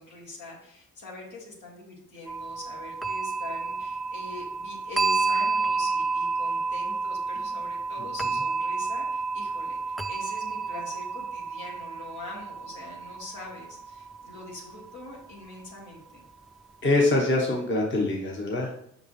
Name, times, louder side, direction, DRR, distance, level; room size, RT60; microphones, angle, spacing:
voice 1, 0.0-16.2, left 2 dB, 75° left, -4 dB, 2.3 m, -43 dB
sound 1, 2.3-15.2, right 4 dB, ahead, 0.3 m, -30 dB
voice 2, 16.8-18.7, left 2 dB, 40° left, -1 dB, 1.2 m, -24 dB
5.9 x 5.1 x 3.3 m, 0.72 s
cardioid pair, 90°, 30 cm